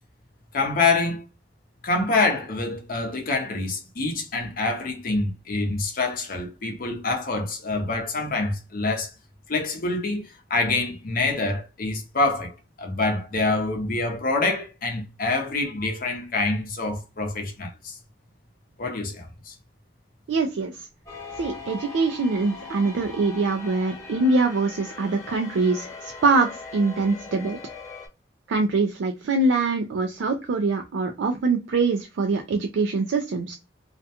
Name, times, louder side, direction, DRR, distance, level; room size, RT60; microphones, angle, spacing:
voice 1, 0.5-1.2 1.8-9.1 9.5-17.9 18.8-19.6, left 3 dB, 50° left, 0.7 m, -26 dB
voice 2, 20.3-20.8 21.4-27.6 28.5-33.6, right 3 dB, 80° right, 0.4 m, -24 dB
sound 1, 21.0-28.1, left 4 dB, 20° left, 0.9 m, -40 dB
2.4 x 2.2 x 2.7 m
head